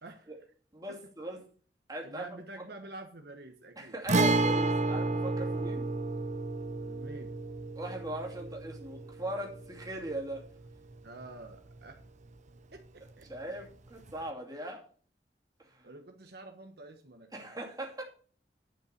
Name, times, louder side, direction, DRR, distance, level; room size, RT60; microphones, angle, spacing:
voice 1, 0.0-0.3 0.9-1.0 2.0-4.0 6.8-7.3 11.0-12.0 12.7-13.5 15.8-17.6, right 2 dB, 65° right, 1.2 m, -48 dB
voice 2, 0.7-1.4 1.9-2.3 3.8-5.9 7.8-10.4 13.3-14.8 15.6-15.8 17.3-18.0, right 1 dB, 20° right, 2.5 m, -39 dB
Guitar, 4.1-11.7 12.0-12.1 14.1-14.2, right 2 dB, 45° right, 0.8 m, -31 dB
10.5 x 5.6 x 6.6 m
head